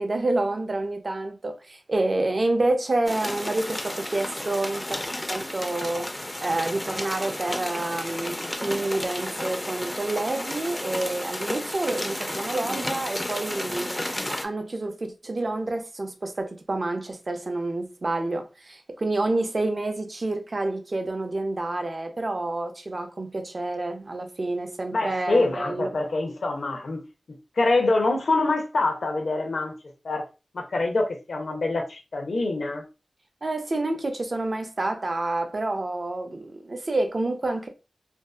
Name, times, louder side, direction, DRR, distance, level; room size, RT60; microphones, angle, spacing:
voice 1, 0.0-5.0 5.3-6.1 6.4-25.9 33.4-37.7, right 2 dB, 45° right, 0.5 m, -28 dB
sound 1, 3.1-14.5, left 1 dB, 15° left, 0.3 m, -32 dB
voice 2, 24.9-27.0 27.6-29.7 30.0-30.2 30.5-32.8, left 2 dB, 80° left, 0.6 m, -25 dB
2.6 x 2.3 x 2.2 m
wide cardioid pair, 85°, 0 cm